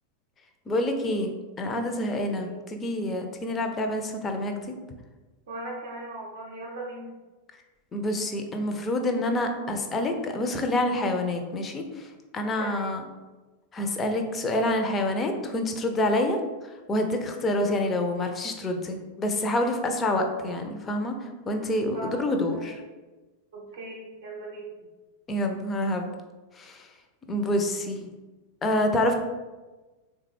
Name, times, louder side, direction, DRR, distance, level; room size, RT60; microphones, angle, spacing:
voice 1, 0.7-1.3 1.6-4.7 7.9-12.1 12.3-13.0 13.7-16.4 16.9-22.8 25.3-26.1 26.6-26.9 27.3-28.1 28.6-29.1, left 1 dB, 20° left, 5 dB, 0.4 m, -27 dB
voice 2, 2.3-2.6 5.5-7.1 12.6-12.9 21.9-22.8 23.5-24.7, right 2 dB, 60° right, -3 dB, 0.6 m, -39 dB
3.5 x 2.2 x 3.2 m, 1.2 s
figure-of-eight pair, 90°, 0 cm